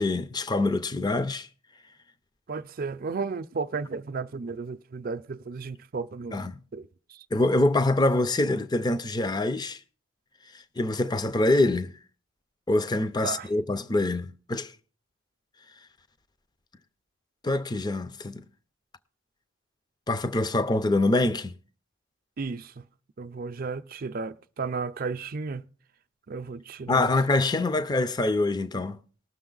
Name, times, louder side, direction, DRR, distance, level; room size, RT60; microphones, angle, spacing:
voice 1, 0.0-1.5 6.3-6.6 7.3-9.8 10.8-11.9 12.7-14.7 17.4-18.4 20.1-21.5 26.9-29.0, left 2 dB, 20° left, 0.5 m, -25 dB
voice 2, 2.5-6.4 6.7-7.2 13.2-13.5 22.4-22.8 23.2-25.6 26.3-27.1, right 4 dB, 45° right, 0.5 m, -34 dB
19.5 x 6.5 x 3.9 m
head